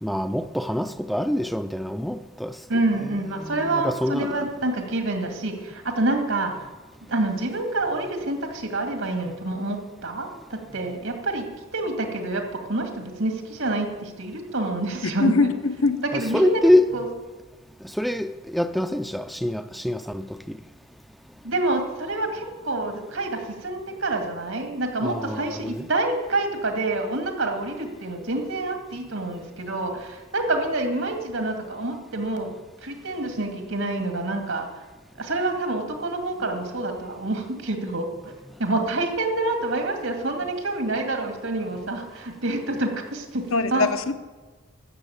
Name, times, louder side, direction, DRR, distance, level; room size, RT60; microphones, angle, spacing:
voice 1, 0.0-2.6 3.3-4.5 16.1-16.9 17.8-20.6 25.0-25.9, left 1 dB, ahead, 0.4 m, -25 dB
voice 2, 2.7-6.5 7.1-11.5 11.7-15.5 16.0-16.6 16.9-17.1 21.4-32.5 32.8-34.8 35.2-38.3 38.6-43.4 43.7-43.9, right 2 dB, 80° right, 2.4 m, -27 dB
voice 3, 15.0-16.0 43.5-44.1, left 3 dB, 85° left, 0.9 m, -22 dB
13.5 x 7.1 x 8.7 m
head